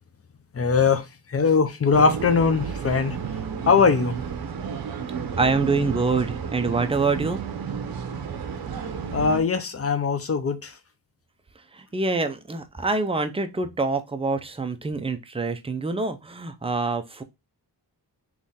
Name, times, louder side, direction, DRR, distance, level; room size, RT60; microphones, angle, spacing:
voice 1, 0.5-1.0 1.3-3.2 3.7-4.2 9.1-10.7, left 5 dB, 35° left, 0.6 m, -21 dB
sound 1, 1.9-9.4, right 6 dB, 65° right, 0.7 m, -32 dB
voice 2, 5.4-7.4 11.7-17.2, right 3 dB, 15° right, 0.4 m, -25 dB
3.7 x 3.1 x 4.0 m
wide cardioid pair, 155°, 39 cm